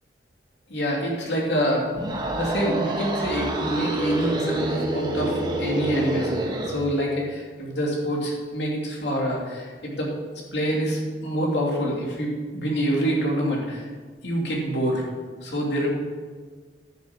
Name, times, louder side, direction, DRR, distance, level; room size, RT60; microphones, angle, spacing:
voice 1, 0.7-1.9 2.3-13.8 14.2-15.1 15.4-15.9, equal, 80° left, -2 dB, 2.7 m, -26 dB
sound 1, 1.9-6.8, right 1 dB, 25° right, 1.2 m, -27 dB
10.0 x 7.2 x 6.0 m, 1.5 s
head